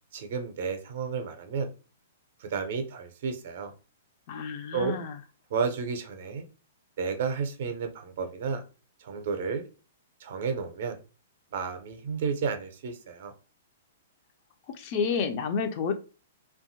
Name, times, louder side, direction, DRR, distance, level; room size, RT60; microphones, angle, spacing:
voice 1, 0.1-1.7 2.4-3.7 4.7-5.0 5.5-6.4 7.0-8.6 9.0-9.6 10.2-11.0 11.5-13.3, right 5 dB, 55° right, 6 dB, 0.5 m, -32 dB
voice 2, 4.3-5.2 14.7-15.9, left 6 dB, 40° left, 7 dB, 0.4 m, -30 dB
2.7 x 2.3 x 2.6 m, 0.34 s
figure-of-eight pair, 110°, 0 cm